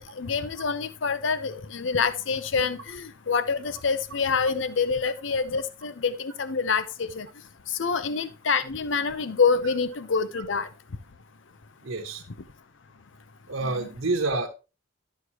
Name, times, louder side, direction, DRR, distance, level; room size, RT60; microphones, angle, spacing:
voice 1, 0.0-7.3 7.8-10.7 13.6-13.9, left 5 dB, 65° left, 13 dB, 0.6 m, -26 dB
voice 2, 11.8-12.2 13.5-14.5, right 3 dB, 90° right, 0 dB, 1.1 m, -28 dB
11.0 x 6.6 x 3.0 m, 0.29 s
head